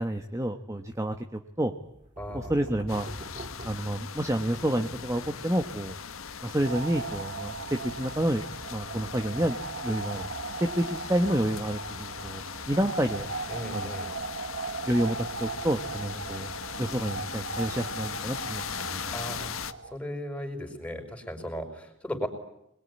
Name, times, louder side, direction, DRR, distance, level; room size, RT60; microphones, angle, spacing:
voice 1, 0.0-1.7 2.3-3.1 3.6-5.9 6.4-8.4 8.7-10.3 10.6-12.4 12.7-13.3 13.7-13.9 14.9-16.5 16.8-19.0, right 1 dB, 15° right, 6 dB, 1.2 m, -29 dB
sound 1, 1.8-4.7, right 1 dB, 35° right, 2.1 m, -44 dB
voice 2, 2.2-2.5 13.5-14.2 19.1-19.6 19.9-22.3, equal, 5° left, 4 dB, 5.2 m, -36 dB
sound 2, 2.9-19.7, left 6 dB, 80° left, 1.5 m, -39 dB
sound 3, 6.6-20.0, right 4 dB, 55° right, 1.2 m, -38 dB
26.5 x 22.0 x 9.8 m, 0.81 s
head